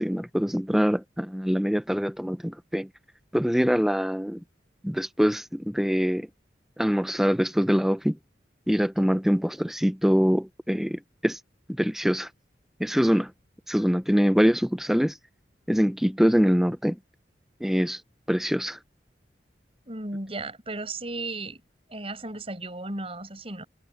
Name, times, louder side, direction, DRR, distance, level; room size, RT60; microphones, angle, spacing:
voice 1, 0.0-2.9 3.3-4.4 4.8-6.3 6.8-8.2 8.7-11.4 11.7-12.3 12.8-13.3 13.7-15.2 15.7-17.0 17.6-18.0 18.3-18.8, equal, ahead, 0.6 m, -24 dB
voice 2, 19.9-21.6 21.9-23.6, right 2 dB, 35° right, 7.4 m, -35 dB
head